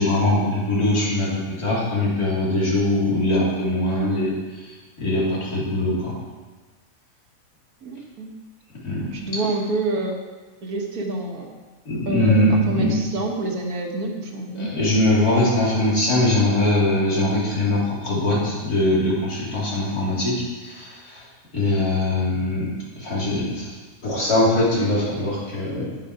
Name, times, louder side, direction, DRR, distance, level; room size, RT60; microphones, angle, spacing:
voice 1, 0.0-4.3 5.0-6.1 8.8-9.0 11.9-12.9 14.6-20.3 20.6-21.2 21.5-22.7 23.0-23.7 24.0-26.0, left 1 dB, 85° left, -6 dB, 3.5 m, -21 dB
voice 2, 7.8-8.3 9.1-10.2 10.6-11.5 12.1-14.7, right 2 dB, 75° right, 2 dB, 1.8 m, -27 dB
9.9 x 8.7 x 4.8 m, 1.3 s
omnidirectional pair, 1.6 m